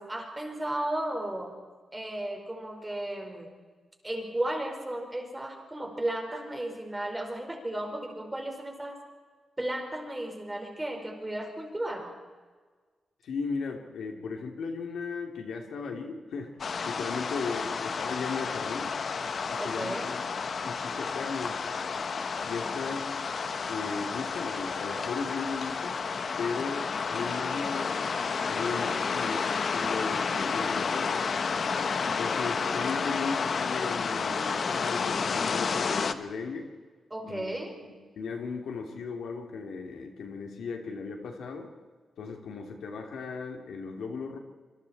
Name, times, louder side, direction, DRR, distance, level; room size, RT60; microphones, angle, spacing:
voice 1, 0.0-1.6 1.9-3.5 4.0-9.0 9.6-12.1 19.6-20.2 22.6-22.8 37.1-37.8, right 1 dB, 15° right, 2 dB, 4.8 m, -34 dB
voice 2, 13.2-16.5 16.8-18.9 19.5-20.3 20.6-21.6 22.4-23.3 23.7-26.0 26.4-28.0 28.5-31.3 32.0-36.7 37.2-37.5 37.8-41.7 42.2-44.4, left 5 dB, 90° left, 3 dB, 3.2 m, -36 dB
sound 1, 16.6-36.1, left 5 dB, 55° left, 1.2 m, -31 dB
27.0 x 25.0 x 4.4 m, 1.4 s
cardioid pair, 110°, 0 cm